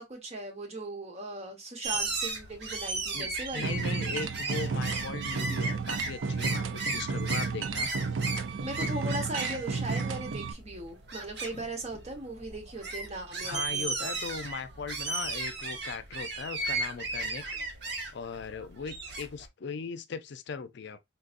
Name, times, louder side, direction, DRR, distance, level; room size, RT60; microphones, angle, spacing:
voice 1, 0.0-3.8 8.6-14.1, right 1 dB, 35° right, 1.1 m, -38 dB
noisy seagulss people, 1.8-19.5, right 3 dB, 60° right, 1.0 m, -36 dB
voice 2, 3.1-7.9 11.5-11.7 13.4-17.5 18.1-21.0, left 5 dB, 60° left, 0.4 m, -39 dB
sound 1, 3.6-10.5, right 4 dB, 80° right, 0.5 m, -32 dB
3.9 x 2.7 x 2.5 m
head